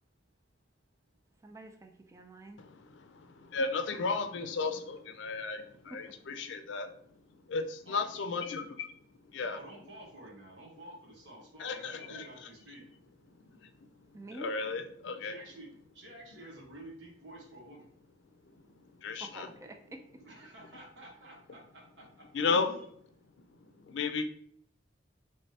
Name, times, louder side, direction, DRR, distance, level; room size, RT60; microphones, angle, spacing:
voice 1, 1.4-2.6 5.9-6.0 14.1-14.5 19.2-20.0, right 1 dB, 15° right, 3 dB, 0.4 m, -47 dB
voice 2, 2.6-6.9 7.5-8.9 9.3-9.6 11.6-12.2 13.6-13.7 14.4-15.4 18.5-18.6 19.0-19.5 22.3-22.7 23.8-24.2, left 4 dB, 85° left, 8 dB, 0.4 m, -34 dB
voice 3, 7.8-8.4 9.5-12.8 15.2-15.7 15.9-17.9 20.2-22.0 22.6-22.9, right 1 dB, 90° right, -2 dB, 1.2 m, -50 dB
3.2 x 3.1 x 2.8 m, 0.65 s
head